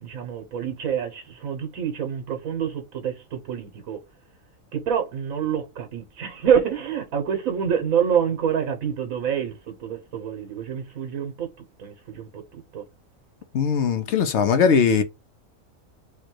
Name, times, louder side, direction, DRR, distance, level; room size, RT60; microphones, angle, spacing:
voice 1, 0.0-4.0 4.7-11.5 11.8-12.8, right 8 dB, 80° right, 1.5 m, -27 dB
voice 2, 13.5-15.0, left 6 dB, 60° left, 0.9 m, -20 dB
4.5 x 2.3 x 4.6 m
omnidirectional pair, 1.4 m